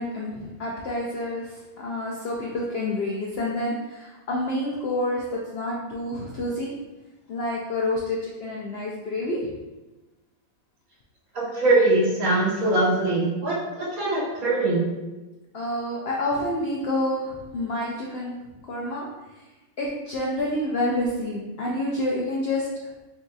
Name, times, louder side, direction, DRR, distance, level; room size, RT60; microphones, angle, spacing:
voice 1, 0.0-6.7 7.3-9.5 15.5-18.3 18.7-19.1 19.8-22.7, left 1 dB, 70° left, -3 dB, 0.6 m, -28 dB
voice 2, 11.3-14.8, right 2 dB, 70° right, -6 dB, 1.7 m, -22 dB
5.4 x 2.6 x 2.3 m, 1.1 s
omnidirectional pair, 1.6 m